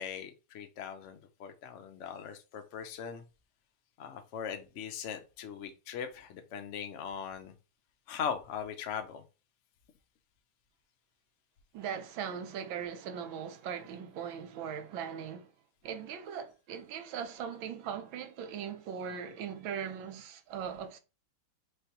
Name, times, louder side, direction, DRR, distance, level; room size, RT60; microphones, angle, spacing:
voice 1, 0.0-3.2 4.0-7.5 8.1-9.2, left 7 dB, 80° left, 0.6 m, -40 dB
voice 2, 11.7-15.5 15.8-21.0, right 7 dB, 80° right, 1.5 m, -39 dB
4.2 x 3.2 x 2.8 m
omnidirectional pair, 2.1 m